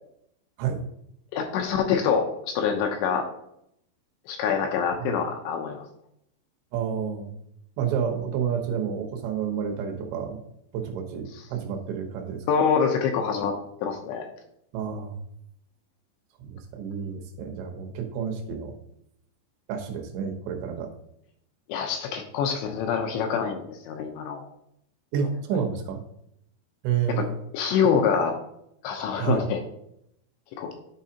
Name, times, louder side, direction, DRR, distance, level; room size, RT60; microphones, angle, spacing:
voice 1, 1.3-3.3 4.3-5.8 12.5-14.3 21.7-24.4 27.2-27.3 27.5-28.4 28.8-29.6 30.6-30.7, left 6 dB, 80° left, 4 dB, 2.7 m, -25 dB
voice 2, 6.7-7.4 7.8-10.4 10.7-12.4 14.7-15.2 16.4-18.7 19.7-20.9 25.1-26.0 26.8-27.4 29.2-29.4, right 7 dB, 75° right, 3 dB, 3.0 m, -29 dB
12.0 x 4.7 x 2.8 m, 0.75 s
omnidirectional pair, 5.7 m